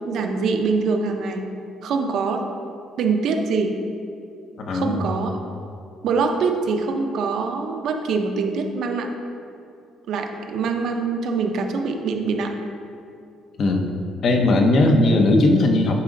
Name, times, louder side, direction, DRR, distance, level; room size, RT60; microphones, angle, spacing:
voice 1, 0.0-1.4 1.8-2.4 3.0-3.7 4.7-5.4 6.0-9.1 10.1-12.5, right 4 dB, 55° right, 4 dB, 0.7 m, -24 dB
voice 2, 4.6-5.1 13.6-13.9 14.2-16.0, left 2 dB, 40° left, 3 dB, 0.8 m, -18 dB
9.8 x 4.9 x 3.8 m, 2.4 s
cardioid pair, 165°, 0 cm